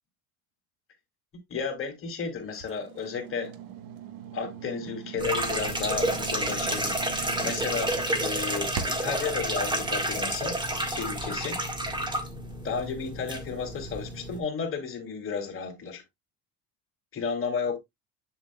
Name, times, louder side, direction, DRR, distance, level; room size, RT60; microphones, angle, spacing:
voice 1, 1.5-3.5 4.3-10.5 10.9-11.6 12.6-16.0 17.1-17.8, left 5 dB, 35° left, 2.9 m, -33 dB
sound 1, 2.5-9.2, right 8 dB, 65° right, 1.3 m, -41 dB
sound 2, 5.2-14.4, right 1 dB, 10° right, 1.7 m, -30 dB
7.6 x 7.2 x 2.3 m
cardioid pair, 125°, 37 cm